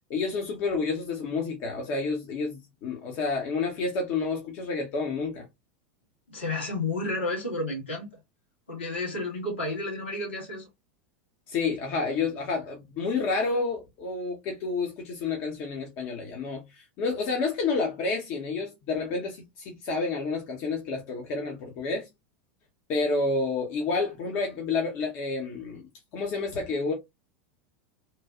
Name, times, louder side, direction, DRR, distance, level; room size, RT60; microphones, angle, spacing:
voice 1, 0.1-5.5 11.5-22.1 22.9-26.9, left 4 dB, 50° left, 0.8 m, -29 dB
voice 2, 6.3-8.1 8.7-10.7, left 2 dB, 75° left, 1.6 m, -31 dB
3.0 x 2.2 x 2.4 m
figure-of-eight pair, 85°, 6 cm